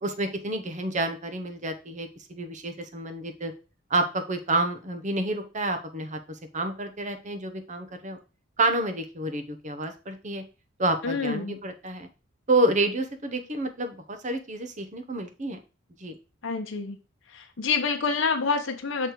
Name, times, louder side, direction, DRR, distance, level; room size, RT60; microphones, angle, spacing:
voice 1, 0.0-3.5 3.9-6.2 6.5-8.2 8.6-10.4 10.8-12.1 12.5-15.6 16.0-16.1, right 2 dB, 40° right, 7 dB, 0.9 m, -29 dB
voice 2, 11.0-11.6 16.4-17.0 17.3-19.1, left 4 dB, 75° left, 5 dB, 0.8 m, -27 dB
6.5 x 3.3 x 4.5 m, 0.32 s
head